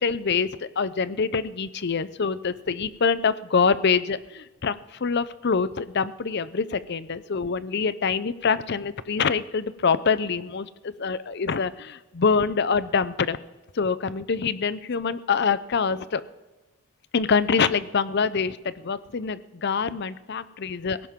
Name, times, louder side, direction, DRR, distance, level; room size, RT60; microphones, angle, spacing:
voice 1, 0.0-13.4 13.7-16.2 17.1-21.1, left 5 dB, 50° left, 15 dB, 0.6 m, -25 dB
17.5 x 17.0 x 3.7 m, 1.1 s
head